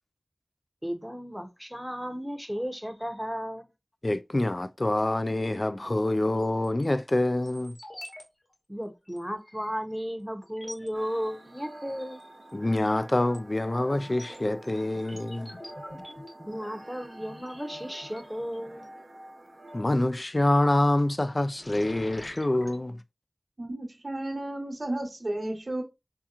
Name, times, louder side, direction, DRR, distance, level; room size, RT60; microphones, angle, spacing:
voice 1, 0.8-3.7 8.7-12.3 16.4-18.9, equal, 5° right, 0.8 m, -34 dB
voice 2, 4.0-7.8 12.5-15.6 19.7-23.0, left 1 dB, 40° left, 0.3 m, -26 dB
sound 1, 6.4-6.9 7.4-8.2 8.5-8.6 9.1-9.2 9.9-10.0 10.4-10.9 12.1-12.5 12.9-18.8 20.4-20.8 21.2-22.8, left 1 dB, 55° left, 1.2 m, -47 dB
sound 2, 10.9-19.8, right 1 dB, 90° right, 0.8 m, -47 dB
voice 3, 23.6-25.8, right 1 dB, 65° right, 1.1 m, -33 dB
3.5 x 2.9 x 2.4 m
wide cardioid pair, 50°, 0 cm